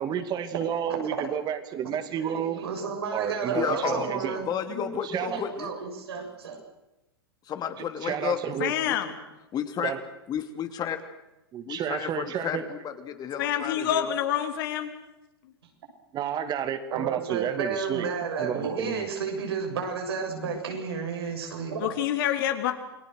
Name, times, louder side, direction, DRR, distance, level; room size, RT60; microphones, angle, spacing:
voice 1, 0.0-2.6 3.1-4.4 5.0-5.4 8.0-8.7 9.8-10.0 11.5-12.6 16.1-18.1 18.3-19.1, right 9 dB, 30° right, 10 dB, 2.5 m, -31 dB
voice 2, 0.9-1.3 2.2-4.9 5.2-6.6 16.9-21.9, right 5 dB, 80° right, 2 dB, 7.0 m, -32 dB
voice 3, 3.5-4.1 4.5-5.7 7.5-8.4 8.8-9.0 9.5-9.9 10.3-11.0 11.7-14.1, left 9 dB, 30° left, 8 dB, 2.6 m, -32 dB
voice 4, 8.6-9.1 13.4-14.9 21.8-22.7, left 10 dB, 60° left, 6 dB, 3.2 m, -27 dB
28.5 x 20.5 x 6.5 m, 0.96 s
hypercardioid pair, 110°, 13 cm